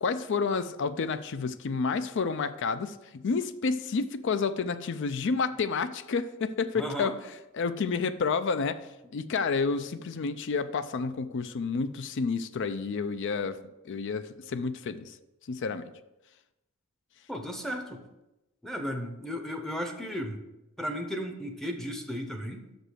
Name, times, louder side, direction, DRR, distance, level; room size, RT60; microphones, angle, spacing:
voice 1, 0.0-7.2 7.5-8.8 9.1-13.6 13.8-15.1 15.5-15.9, left 4 dB, 55° left, 13 dB, 0.4 m, -30 dB
voice 2, 6.8-7.1 17.3-18.0 18.6-20.4 20.8-22.6, equal, ahead, 3 dB, 0.6 m, -34 dB
6.3 x 5.2 x 6.3 m, 0.96 s
head